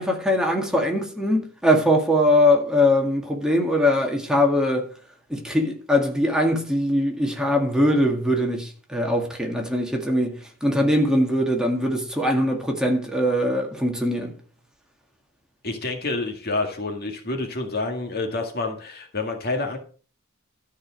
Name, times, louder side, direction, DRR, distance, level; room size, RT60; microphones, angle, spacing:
voice 1, 0.0-4.9 5.3-10.3 10.6-14.3, left 1 dB, 5° right, 2.0 m, -21 dB
voice 2, 15.6-19.8, left 3 dB, 50° left, 1.9 m, -28 dB
13.0 x 5.0 x 6.2 m
head